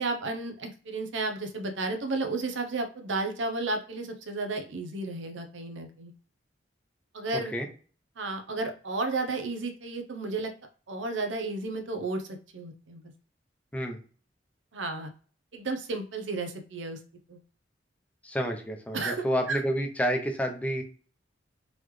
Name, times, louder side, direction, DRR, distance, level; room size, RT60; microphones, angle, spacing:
voice 1, 0.0-6.1 7.1-7.5 8.2-10.5 10.9-13.1 14.7-15.1 15.5-17.0 17.3-17.4 18.9-19.6, right 3 dB, 85° right, 5 dB, 0.8 m, -33 dB
voice 2, 7.3-7.7 13.7-14.0 18.2-20.8, equal, 10° left, 3 dB, 0.6 m, -29 dB
4.0 x 3.1 x 3.2 m, 0.40 s
head